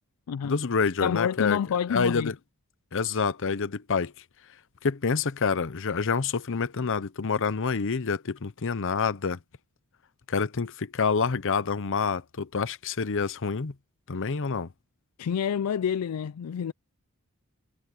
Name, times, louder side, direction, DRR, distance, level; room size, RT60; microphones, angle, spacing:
voice 1, 0.4-1.6 1.9-2.3 2.9-4.1 4.8-9.4 10.3-13.7 14.1-14.7, left 5 dB, 60° left, 0.8 m, -27 dB
voice 2, 1.0-2.3 15.2-16.7, left 8 dB, 85° left, 0.4 m, -28 dB
head